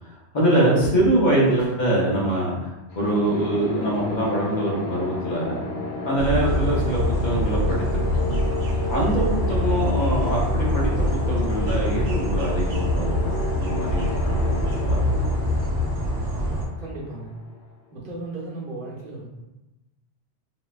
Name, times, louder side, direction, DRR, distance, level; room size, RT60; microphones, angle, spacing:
voice 1, 0.0-2.7 3.0-5.6 6.0-7.8 8.9-15.3, right 1 dB, 45° left, -5 dB, 0.7 m, -24 dB
sound 1, 2.9-17.6, left 3 dB, 80° left, 1.0 m, -33 dB
sound 2, 6.2-16.7, left 1 dB, 80° right, 0.9 m, -24 dB
voice 2, 16.8-17.4 17.9-19.3, right 2 dB, 50° right, -5 dB, 1.0 m, -35 dB
3.9 x 2.1 x 2.3 m, 1.0 s
omnidirectional pair, 1.2 m